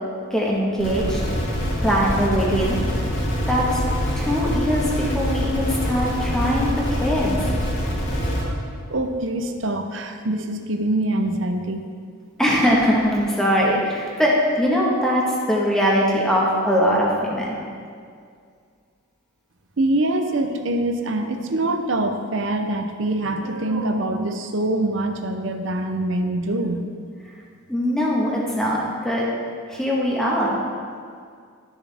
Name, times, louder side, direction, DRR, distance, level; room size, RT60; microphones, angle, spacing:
voice 1, 0.3-1.2 1.8-2.8 3.5-3.8 4.2-7.5 12.4-17.6 27.7-29.3 29.7-30.6, equal, 5° left, -4 dB, 1.4 m, -21 dB
sound 1, 0.8-8.4, equal, 60° left, 2.0 m, -25 dB
voice 2, 8.2-11.8 19.8-26.9, right 1 dB, 65° right, 5 dB, 0.7 m, -24 dB
12.0 x 7.1 x 3.5 m, 2.2 s
head